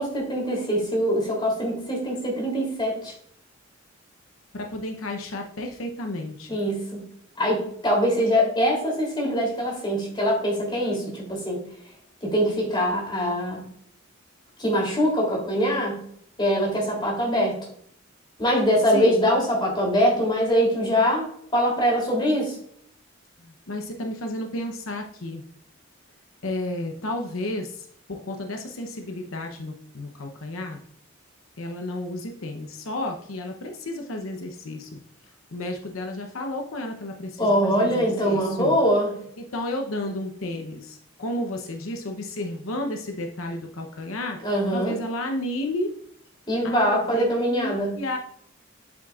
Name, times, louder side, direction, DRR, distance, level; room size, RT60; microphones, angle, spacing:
voice 1, 0.0-3.1 6.5-7.0 7.4-11.6 12.2-13.6 14.6-16.0 16.4-17.6 18.4-22.6 37.4-39.1 44.4-44.9 46.5-47.9, equal, 25° left, -2 dB, 3.1 m, -23 dB
voice 2, 4.5-6.5 18.9-19.2 23.4-25.4 26.4-30.8 31.6-35.0 35.5-38.8 39.4-44.4 44.7-45.9 46.6-48.2, left 1 dB, 85° left, 3 dB, 0.8 m, -32 dB
7.6 x 7.4 x 2.4 m, 0.66 s
head